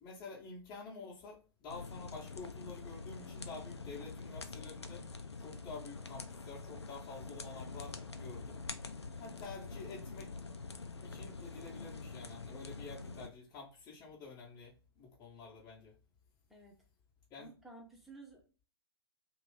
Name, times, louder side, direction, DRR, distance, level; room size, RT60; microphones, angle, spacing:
voice 1, 0.0-5.1 5.4-8.6 9.2-10.3 11.0-15.9 17.3-17.5, left 4 dB, 25° left, -4 dB, 1.0 m, -49 dB
sound 1, 1.7-13.3, left 4 dB, 85° left, 0.5 m, -46 dB
voice 2, 16.5-16.8 17.4-18.6, right 2 dB, ahead, -2 dB, 0.9 m, -54 dB
2.9 x 2.7 x 3.2 m, 0.35 s
figure-of-eight pair, 110°, 14 cm